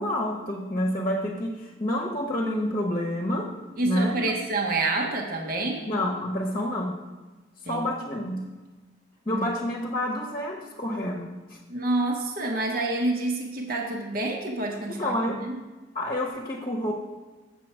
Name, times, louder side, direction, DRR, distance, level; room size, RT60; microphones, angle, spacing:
voice 1, 0.0-4.3 5.8-7.0 7.6-8.4 9.2-11.6 14.9-15.5 15.9-16.9, left 1 dB, 30° left, -1 dB, 0.9 m, -28 dB
voice 2, 3.8-5.8 7.7-7.8 9.3-9.4 11.7-15.6, right 2 dB, 50° right, 2 dB, 0.9 m, -28 dB
7.6 x 7.1 x 4.4 m, 1.2 s
head